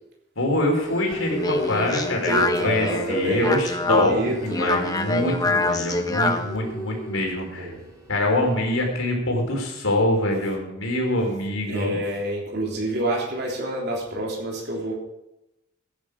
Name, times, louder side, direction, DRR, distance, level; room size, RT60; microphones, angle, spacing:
voice 1, 0.4-2.4 2.6-7.7 8.1-12.0, left 1 dB, 85° left, 1 dB, 3.8 m, -24 dB
sound 1, 0.7-9.0, equal, 15° right, 3.5 m, -38 dB
Speech, 1.1-6.6, left 3 dB, 20° left, 1.0 m, -26 dB
voice 2, 2.3-4.6 7.6-7.8 11.7-15.0, right 1 dB, 55° right, -2 dB, 3.5 m, -27 dB
16.0 x 9.7 x 4.9 m, 0.92 s
head